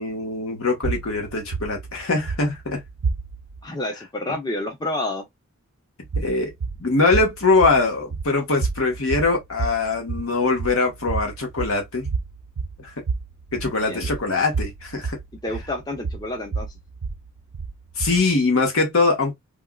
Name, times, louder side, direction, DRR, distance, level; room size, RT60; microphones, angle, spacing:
voice 1, 0.0-2.8 6.1-6.5 6.8-12.1 12.8-12.9 13.5-15.2 18.0-19.3, left 3 dB, 70° left, 1.2 m, -22 dB
sound 1, 0.8-3.6 6.0-18.4, right 4 dB, 80° right, 0.5 m, -31 dB
voice 2, 3.6-5.3 13.6-14.1 15.4-16.7, left 1 dB, 20° left, 0.6 m, -29 dB
3.4 x 2.4 x 2.2 m
head